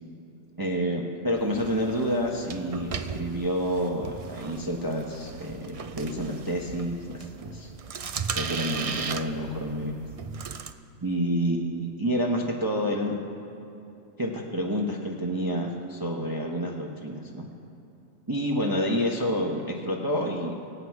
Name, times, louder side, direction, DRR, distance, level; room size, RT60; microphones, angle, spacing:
voice 1, 0.6-7.7 8.3-9.9 11.0-13.2 14.2-17.4 18.3-20.5, equal, 20° right, -1 dB, 1.0 m, -29 dB
sound 1, 1.4-10.7, right 6 dB, 60° right, 0.3 m, -37 dB
24.0 x 8.1 x 4.8 m, 2.8 s
omnidirectional pair, 1.3 m